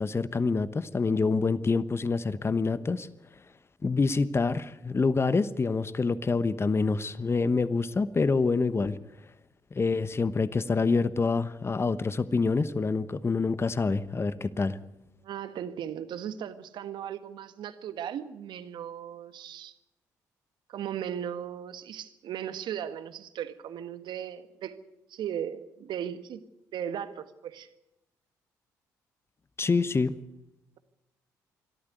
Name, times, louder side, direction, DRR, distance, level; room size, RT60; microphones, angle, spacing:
voice 1, 0.0-3.1 3.8-9.0 9.7-14.8 29.6-30.1, left 4 dB, 30° left, 15 dB, 1.1 m, -26 dB
voice 2, 15.2-19.7 20.7-24.8 25.1-26.4 26.7-27.7, right 9 dB, 65° right, 12 dB, 1.5 m, -37 dB
23.0 x 13.5 x 9.4 m, 0.86 s
hypercardioid pair, 45°, 9 cm